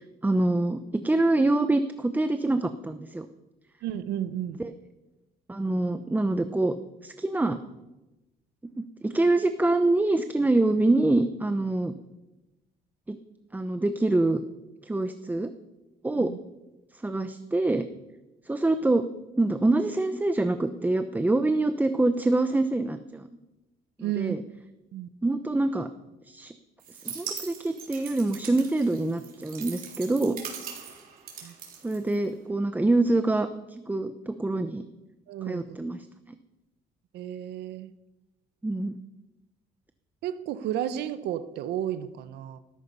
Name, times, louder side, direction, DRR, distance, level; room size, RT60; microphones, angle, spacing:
voice 1, 0.0-3.3 4.6-4.7 5.5-6.7 7.0-7.6 8.7-11.9 13.1-13.2 13.5-14.4 14.8-15.5 16.0-16.3 17.0-17.8 18.5-19.0 19.4-23.3 24.2-24.4 25.2-25.9 26.3-26.5 27.0-30.4 31.8-33.5 33.9-34.8 35.5-36.1 38.6-39.0, right 2 dB, 10° right, 9 dB, 0.7 m, -25 dB
voice 2, 3.8-4.6 16.1-16.4 24.0-24.4 24.9-25.1 31.4-31.5 35.3-35.8 37.1-37.9 40.2-42.6, right 11 dB, 80° right, 13 dB, 1.0 m, -32 dB
sound 1, 26.8-32.5, right 7 dB, 60° right, 3.8 m, -41 dB
15.5 x 13.5 x 5.5 m, 1.0 s
cardioid pair, 110°, 17 cm